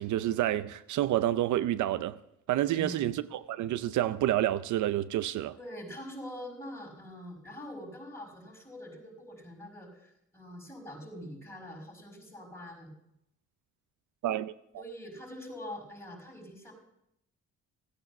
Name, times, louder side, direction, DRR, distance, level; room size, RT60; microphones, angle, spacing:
voice 1, 0.0-2.2 2.5-5.6 14.2-14.5, right 13 dB, 75° right, 0.6 m, -29 dB
voice 2, 2.7-3.1 5.6-12.9 14.7-16.7, left 1 dB, 10° left, 5.5 m, -44 dB
16.0 x 9.3 x 7.0 m
cardioid pair, 90°, 30 cm